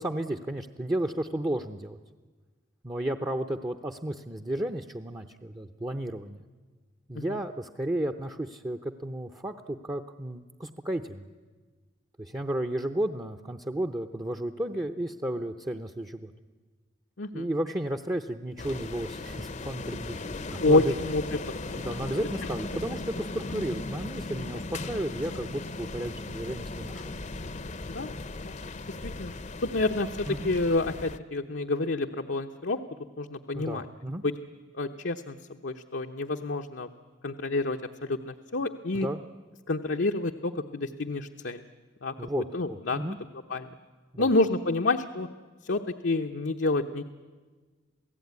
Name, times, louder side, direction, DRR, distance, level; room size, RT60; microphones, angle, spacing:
voice 1, 0.0-2.0 2.8-6.4 7.1-11.3 12.2-16.3 17.3-20.9 21.8-27.2 30.3-30.5 33.5-34.2 38.9-39.2 42.2-43.2 44.1-44.3, right 1 dB, 20° right, 5 dB, 0.7 m, -33 dB
voice 2, 17.2-17.5 20.6-21.2 21.7-21.8 27.9-28.1 28.5-28.6 29.0-29.3 29.6-32.8 33.2-33.8 34.2-34.3 34.7-36.9 37.2-39.1 39.7-41.6 42.0-42.1 42.5-43.0 43.5-43.7 44.2-45.3 45.6-47.0, left 2 dB, 75° left, 4 dB, 0.9 m, -28 dB
sound 1, 18.6-31.2, left 2 dB, 40° left, 0.8 m, -37 dB
27.5 x 17.0 x 9.5 m, 1.4 s
head